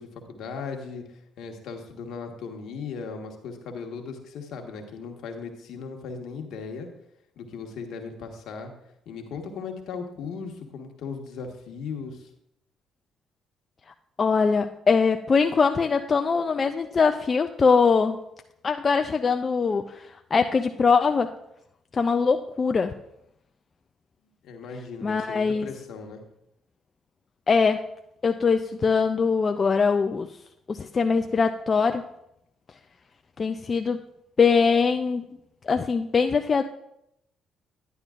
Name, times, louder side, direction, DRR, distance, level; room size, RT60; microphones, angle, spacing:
voice 1, 0.0-6.9 7.4-8.7 9.0-12.3 24.4-26.2, left 5 dB, 70° left, 3 dB, 1.4 m, -37 dB
voice 2, 14.2-18.2 18.6-21.3 21.9-22.9 25.0-25.7 27.5-27.8 28.2-30.3 30.7-32.0 33.4-34.0 34.4-35.2 35.6-36.6, left 5 dB, 40° left, 6 dB, 0.4 m, -22 dB
10.5 x 10.0 x 2.5 m, 0.80 s
hypercardioid pair, 55°, 0 cm